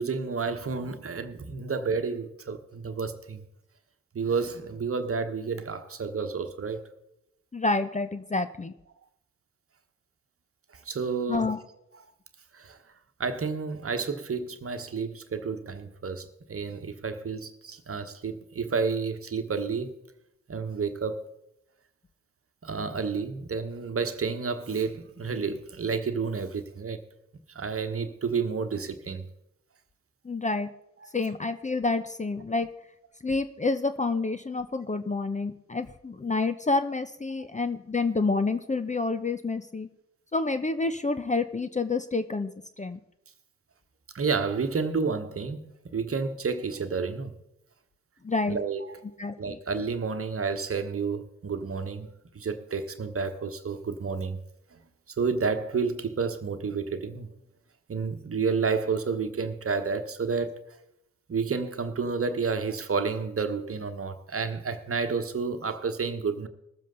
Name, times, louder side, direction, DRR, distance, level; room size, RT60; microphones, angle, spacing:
voice 1, 0.0-3.4 4.1-6.8 10.7-11.5 12.5-12.8 13.2-19.9 20.5-21.3 22.6-27.0 27.5-29.3 31.0-31.1 44.1-47.4 48.5-49.0 49.4-54.4 54.7-54.8 55.2-57.3 57.9-60.6 61.3-66.5, right 5 dB, 40° right, 1.3 m, -30 dB
voice 2, 7.5-8.7 11.3-11.6 30.2-30.7 31.1-32.7 33.2-39.9 40.3-42.5 42.8-43.0 48.2-48.6 49.2-49.6, left 3 dB, 20° left, 0.8 m, -28 dB
20.5 x 7.5 x 3.9 m
supercardioid pair, 50°, 34 cm